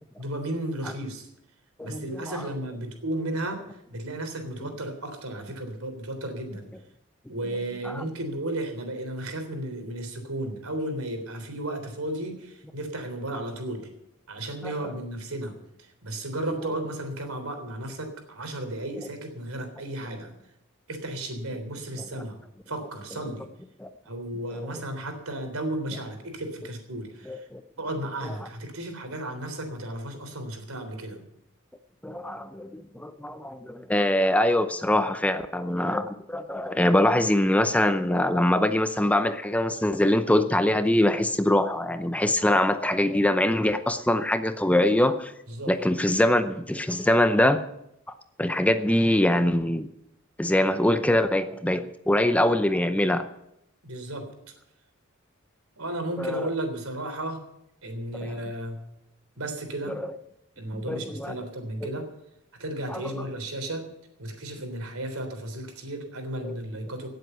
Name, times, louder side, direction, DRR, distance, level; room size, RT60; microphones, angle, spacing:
voice 1, 0.2-1.3 1.8-6.7 7.3-13.9 14.3-20.3 20.9-22.4 22.7-23.5 24.1-27.5 27.8-31.2 45.5-45.7 53.8-54.3 55.8-57.4 57.8-58.8 59.4-60.0 60.6-62.1 62.6-63.9 64.2-67.1, right 1 dB, 80° right, 5 dB, 3.5 m, -34 dB
voice 2, 1.8-2.3 7.9-8.0 14.6-14.7 23.8-23.9 24.5-24.7 27.3-27.6 32.0-45.3 45.7-47.6 48.4-49.9 50.4-53.3 56.2-56.5 58.2-58.3 59.9-60.1 60.7-61.3 61.8-61.9 62.9-63.2 66.4-66.6, left 1 dB, 5° left, 10 dB, 0.7 m, -23 dB
17.5 x 7.9 x 8.0 m, 0.82 s
head